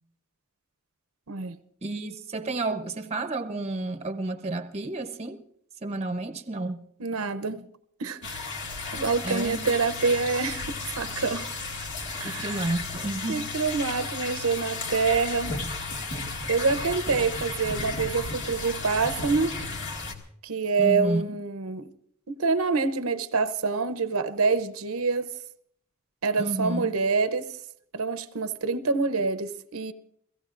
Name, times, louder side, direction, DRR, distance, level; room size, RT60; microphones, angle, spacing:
voice 1, 1.8-5.4 5.8-6.8 9.2-9.7 12.2-13.5 20.8-21.3 26.4-26.9, right 2 dB, 30° right, 0.8 m, -31 dB
voice 2, 7.0-7.7 8.0-8.4 8.9-11.5 12.2-12.7 13.3-15.6 16.5-19.6 20.4-21.9 22.3-25.3 26.2-27.5 27.9-29.9, right 4 dB, 75° right, 0.8 m, -26 dB
sound 1, 8.2-20.1, left 3 dB, 60° left, 2.1 m, -34 dB
30.0 x 16.5 x 2.5 m
head